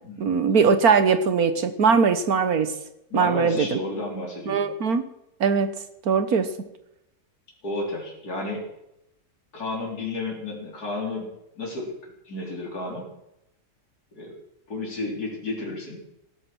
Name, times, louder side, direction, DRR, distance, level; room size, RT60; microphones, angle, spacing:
voice 1, 0.2-2.7 3.1-3.8 4.5-5.0 5.4-5.8 6.1-6.5, right 5 dB, 75° right, 10 dB, 1.6 m, -20 dB
voice 2, 3.1-4.7 7.6-8.7 9.5-11.3 11.6-11.9 12.2-13.1 14.1-14.3 14.7-16.0, left 2 dB, 80° left, -2 dB, 4.4 m, -32 dB
17.0 x 13.0 x 6.2 m, 0.84 s
omnidirectional pair, 1.6 m